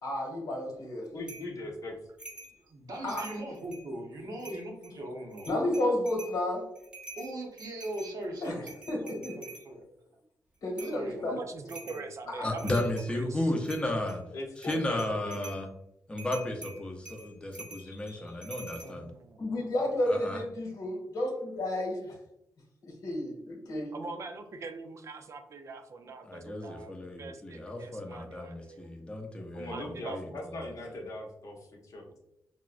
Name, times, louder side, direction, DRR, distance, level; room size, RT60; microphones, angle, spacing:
voice 1, 0.0-1.1 3.0-3.3 5.5-6.7 8.4-8.6 8.9-9.3 10.6-11.4 12.3-12.5 17.8-18.3 19.4-22.2 22.8-23.9, left 1 dB, 80° left, -1 dB, 1.0 m, -32 dB
voice 2, 1.1-2.0 14.3-15.4 29.5-32.2, left 1 dB, 60° left, 0 dB, 0.7 m, -40 dB
sound 1, 1.3-1.5 2.2-2.6 2.9-3.9 4.4-4.9 5.3-6.4 6.8-9.7 10.8-11.0 11.7-12.1 12.4-13.1 13.6-14.2 14.6-15.6 16.2-18.9, right 2 dB, 15° right, 0.9 m, -47 dB
voice 3, 2.6-5.5 7.2-8.7 9.0-9.8 10.8-12.0, right 1 dB, 80° right, 0 dB, 0.7 m, -40 dB
voice 4, 11.3-12.7 13.1-13.5 18.2-18.3 18.8-19.7 23.9-28.9 29.7-30.4, right 4 dB, 50° right, 6 dB, 0.4 m, -44 dB
voice 5, 12.4-14.2 14.6-15.7 16.1-19.1 20.1-20.4 26.2-30.3, left 1 dB, 15° left, 2 dB, 0.5 m, -34 dB
3.5 x 2.1 x 2.4 m, 0.81 s
cardioid pair, 110°, 6 cm